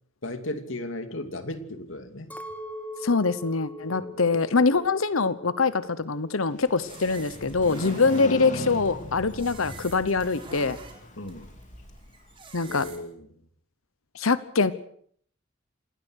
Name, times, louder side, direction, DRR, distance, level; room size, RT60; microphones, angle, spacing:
voice 1, 0.2-2.3 3.9-4.2 7.9-8.4 11.2-11.5 12.7-13.4, left 1 dB, 70° left, 8 dB, 2.7 m, -36 dB
Chink clink, 2.3-6.7 6.9-7.7, left 1 dB, 10° left, 2.1 m, -42 dB
voice 2, 3.0-10.8 12.5-12.8 14.1-14.7, left 4 dB, 85° left, 15 dB, 1.1 m, -24 dB
Motorcycle, 6.4-12.4, left 1 dB, 35° left, 2.9 m, -40 dB
sound 1, 6.9-13.0, right 3 dB, 25° right, 4.5 m, -46 dB
27.0 x 19.0 x 6.5 m, 0.62 s
head